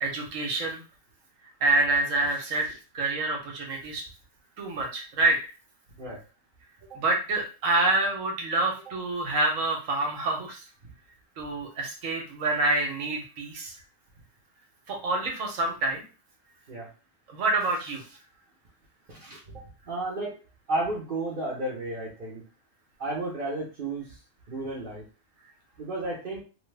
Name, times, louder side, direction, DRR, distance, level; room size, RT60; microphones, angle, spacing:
voice 1, 0.0-0.8 1.6-4.0 4.6-5.4 6.9-10.6 11.4-13.7 14.9-16.0 17.3-18.0, right 2 dB, 85° right, 1 dB, 1.3 m, -27 dB
voice 2, 19.1-19.4 19.9-20.4 20.7-22.4 23.0-24.0 24.5-25.0 25.8-26.4, right 2 dB, 45° right, -6 dB, 0.9 m, -32 dB
3.1 x 2.3 x 3.3 m, 0.33 s
omnidirectional pair, 1.3 m